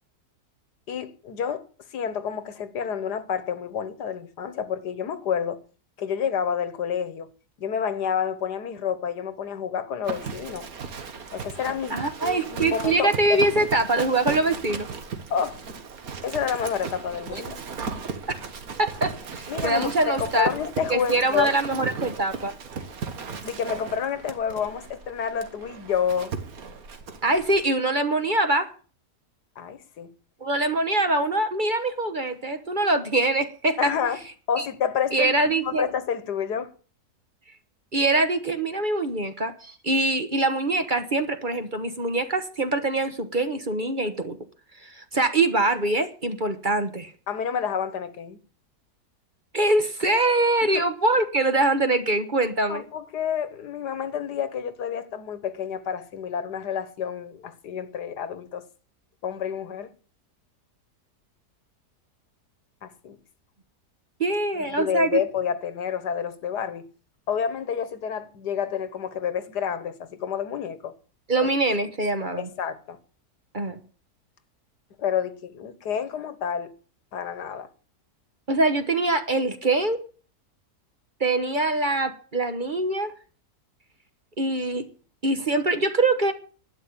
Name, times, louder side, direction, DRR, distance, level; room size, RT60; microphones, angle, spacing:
voice 1, 0.9-1.7 1.9-5.6 6.0-7.3 7.6-10.7 11.3-13.5 15.3-15.6 16.2-17.6 19.5-21.5 23.4-26.3 29.6-30.1 33.8-34.2 34.5-36.7 47.3-48.4 50.7-50.9 52.7-58.7 59.2-60.0 62.8-63.2 64.6-66.9 67.3-70.9 72.4-73.0 75.0-76.7 77.1-77.7, left 7 dB, 85° left, 1.8 m, -29 dB
Livestock farm animals working animals, 10.0-27.6, right 5 dB, 60° right, 1.8 m, -36 dB
voice 2, 11.9-14.9 17.3-17.4 18.8-20.5 20.9-22.5 27.2-28.7 30.4-33.9 34.6-34.7 35.1-35.9 37.9-44.4 44.8-47.1 49.5-52.8 64.2-65.2 71.3-72.5 73.5-73.8 78.5-80.0 81.2-83.1 84.4-84.9 85.2-86.3, right 2 dB, 35° right, 1.2 m, -24 dB
12.0 x 9.1 x 8.8 m
omnidirectional pair, 1.7 m